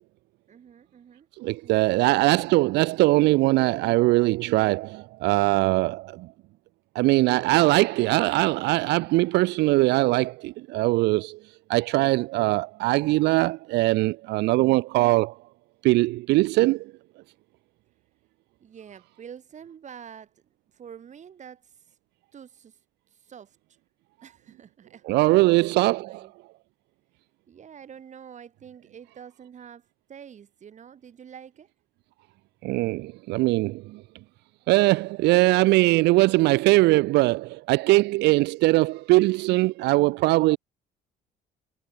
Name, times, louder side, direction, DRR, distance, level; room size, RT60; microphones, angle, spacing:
voice 1, 0.5-1.3 1.6-2.0 18.6-20.3 20.7-21.7 22.3-22.8 23.1-23.6 24.2-26.3 27.5-31.7, right 8 dB, 45° right, 6.6 m, -47 dB
voice 2, 1.4-6.3 6.9-11.4 11.7-15.4 15.8-16.9 25.1-26.3 32.6-34.0 34.7-40.6, right 20 dB, 85° right, 0.7 m, -21 dB
cardioid pair, 110°, 17 cm